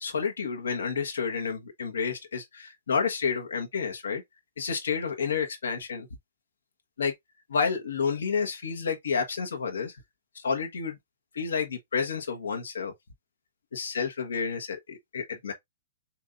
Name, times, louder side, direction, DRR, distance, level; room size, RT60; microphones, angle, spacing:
voice 1, 0.0-4.2 4.6-6.1 7.0-7.1 7.5-10.0 10.3-11.0 11.3-12.9 13.7-15.5, left 5 dB, 85° left, 1.3 m, -30 dB
7.0 x 2.7 x 2.5 m
hypercardioid pair, 150°, 0 cm